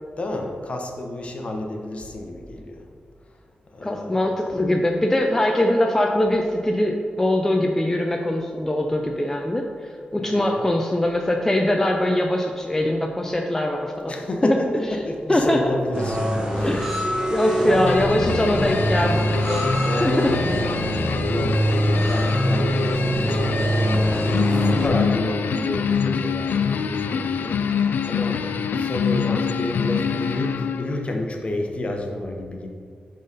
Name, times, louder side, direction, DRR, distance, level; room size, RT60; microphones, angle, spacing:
voice 1, 0.2-2.9 3.7-4.3 10.2-10.6 14.1-17.0 17.6-17.9 19.8-20.4 20.9-21.6 22.0-32.7, left 1 dB, 40° left, 3 dB, 0.9 m, -30 dB
voice 2, 3.8-9.6 10.1-14.1 14.4-14.6 15.3-15.6 16.6-17.0 17.3-20.4, left 1 dB, 15° left, 2 dB, 0.5 m, -22 dB
sound 1, 15.9-24.9, equal, 25° right, 1.3 m, -23 dB
sound 2, 17.9-31.0, left 6 dB, 85° left, 0.4 m, -26 dB
10.5 x 3.9 x 4.0 m, 2.2 s
wide cardioid pair, 110°, 3 cm